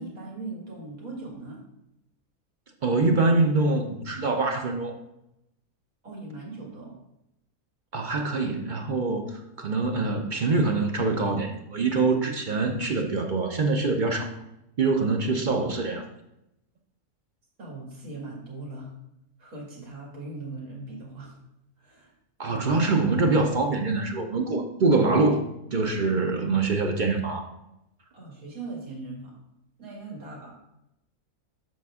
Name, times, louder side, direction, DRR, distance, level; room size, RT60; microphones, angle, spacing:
voice 1, 0.0-1.6 6.0-6.9 17.6-18.9 19.4-21.4 21.8-22.1 22.5-22.6 28.1-29.4 29.8-30.5, right 3 dB, 70° right, -4 dB, 2.7 m, -39 dB
voice 2, 2.8-5.0 7.9-14.3 14.8-16.1 22.4-25.4 25.7-27.5, right 3 dB, 50° right, 4 dB, 0.6 m, -24 dB
7.4 x 5.8 x 3.6 m, 0.85 s
omnidirectional pair, 1.5 m